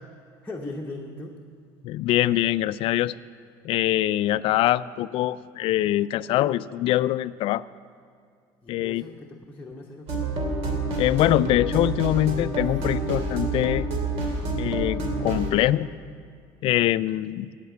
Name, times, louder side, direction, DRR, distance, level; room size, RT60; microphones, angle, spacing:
voice 1, 0.4-1.3 8.6-10.3, left 2 dB, 15° left, -1 dB, 1.0 m, -38 dB
voice 2, 1.8-3.2 3.6-7.6 8.7-9.0 11.0-13.9 14.6-15.9 16.6-17.5, left 14 dB, 60° left, 17 dB, 0.4 m, -23 dB
sound 1, 10.1-15.5, right 2 dB, 65° right, 2.4 m, -28 dB
17.0 x 5.9 x 8.3 m, 2.2 s
supercardioid pair, 100°, 11 cm